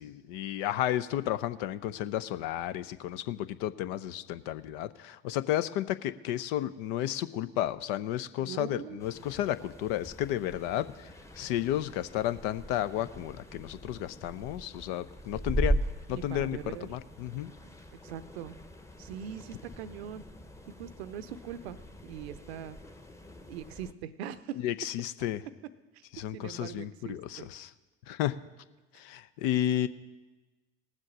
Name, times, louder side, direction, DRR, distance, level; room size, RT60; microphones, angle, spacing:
voice 1, 0.0-11.1 11.4-15.8 16.1-17.5 24.6-25.4 26.1-27.7 28.1-28.4 28.9-29.9, left 12 dB, 65° left, 13 dB, 0.6 m, -32 dB
voice 2, 8.4-9.0 16.1-17.0 18.0-18.6 19.0-20.2 20.7-21.8 22.0-22.8 23.5-24.6 25.9-26.0 26.3-27.5, right 9 dB, 75° right, 14 dB, 0.7 m, -41 dB
sound 1, 9.0-23.9, right 1 dB, 10° left, 1.0 m, -39 dB
18.5 x 7.6 x 6.1 m, 1.2 s
hypercardioid pair, 65°, 32 cm